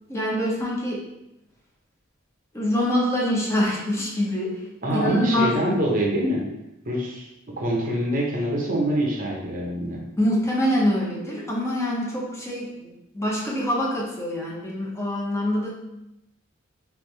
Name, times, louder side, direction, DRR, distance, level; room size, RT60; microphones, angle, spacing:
voice 1, 0.1-1.0 2.5-4.6 4.9-5.6 10.2-15.7, equal, 15° left, -4 dB, 0.8 m, -25 dB
voice 2, 4.8-6.5 6.8-7.3 7.6-10.1, equal, 40° right, -2 dB, 0.9 m, -25 dB
3.4 x 2.6 x 3.3 m, 0.90 s
head